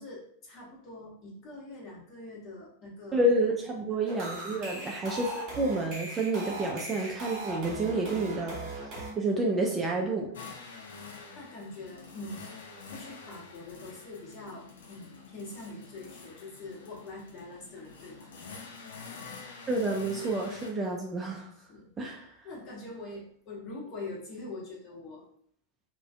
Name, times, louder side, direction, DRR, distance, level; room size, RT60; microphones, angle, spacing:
voice 1, 0.0-3.2 3.8-4.0 4.7-5.0 8.2-8.3 11.3-12.5 12.9-18.3 21.7-22.1 22.4-25.2, left 2 dB, 35° left, -4 dB, 0.9 m, -44 dB
voice 2, 3.1-8.9 9.2-10.3 19.7-21.5 22.0-22.3, right 2 dB, 20° right, -1 dB, 0.4 m, -29 dB
sound 1, 4.1-9.1, right 2 dB, 40° right, 0.9 m, -39 dB
sound 2, 10.3-20.7, left 4 dB, 60° left, 0.4 m, -47 dB
2.4 x 2.2 x 2.4 m, 0.65 s
figure-of-eight pair, 90°, 0 cm